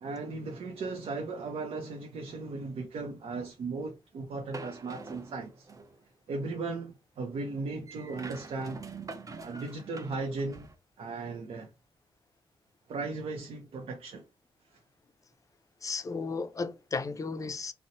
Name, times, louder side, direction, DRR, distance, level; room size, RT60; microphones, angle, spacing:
voice 1, 0.0-5.7 6.3-8.8 9.4-10.7 11.0-11.7 12.9-14.2, right 3 dB, 80° right, 0.6 m, -37 dB
sound 1, 4.5-6.0 7.9-10.7, right 4 dB, 35° right, 0.5 m, -45 dB
voice 2, 15.8-17.7, left 4 dB, 35° left, 0.4 m, -34 dB
2.8 x 2.0 x 2.5 m
wide cardioid pair, 100°, 10 cm